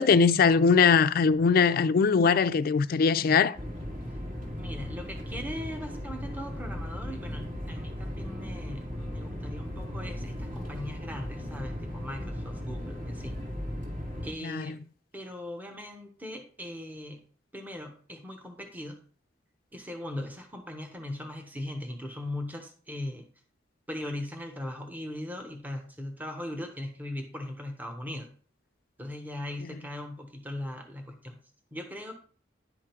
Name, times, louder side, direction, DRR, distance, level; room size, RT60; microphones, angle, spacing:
voice 1, 0.0-3.6 14.4-14.6, left 5 dB, 55° left, 0.4 m, -21 dB
sound 1, 3.5-14.3, equal, 50° right, 2.2 m, -37 dB
voice 2, 4.6-13.4 14.2-14.8 15.1-17.2 17.5-19.0 19.7-23.2 23.9-28.3 29.0-31.4 31.7-32.1, left 1 dB, 10° right, 1.0 m, -39 dB
10.5 x 3.6 x 4.5 m
head